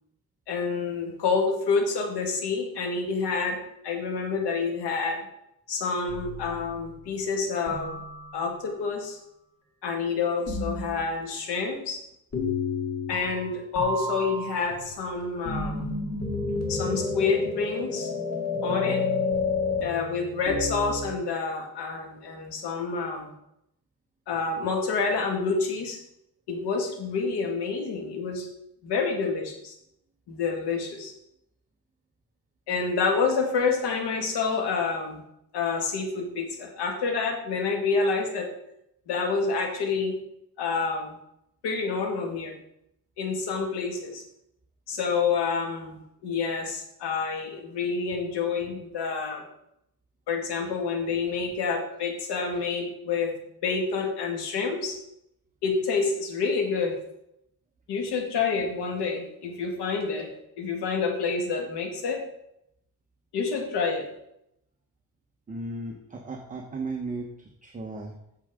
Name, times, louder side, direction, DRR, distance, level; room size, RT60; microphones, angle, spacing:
voice 1, 0.5-3.6 3.8-5.2 5.7-8.0 8.3-9.2 9.8-12.0 13.1-15.9 16.7-18.1 18.6-19.0 19.8-23.3 24.3-26.0 26.5-28.5 28.8-29.7 30.3-31.1 32.7-35.2 35.5-38.5 39.1-40.2 40.6-41.2 41.6-42.6 43.2-44.2 44.9-49.4 50.3-53.3 53.6-55.0 55.6-57.0 57.9-60.3 60.6-62.2 63.3-64.1, left 4 dB, 80° left, 2 dB, 2.0 m, -28 dB
sound 1, 6.1-6.9 7.7-8.7 10.5-11.0 12.3-13.5 13.8-21.1, left 3 dB, 40° left, 2.0 m, -30 dB
voice 2, 65.5-67.3 67.6-68.1, right 3 dB, 20° right, 0 dB, 0.9 m, -35 dB
8.5 x 7.3 x 3.7 m, 0.79 s
cardioid pair, 130°, 40 cm